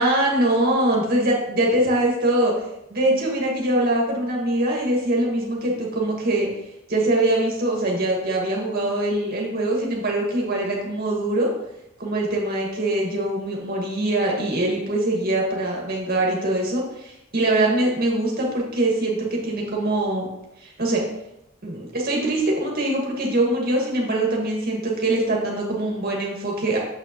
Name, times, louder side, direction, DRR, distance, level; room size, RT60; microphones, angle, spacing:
voice 1, 0.0-2.5 2.9-6.5 6.9-11.5 12.0-20.3 20.6-21.0 21.6-26.8, right 1 dB, 50° right, -2 dB, 1.8 m, -23 dB
7.3 x 6.2 x 3.0 m, 0.85 s
head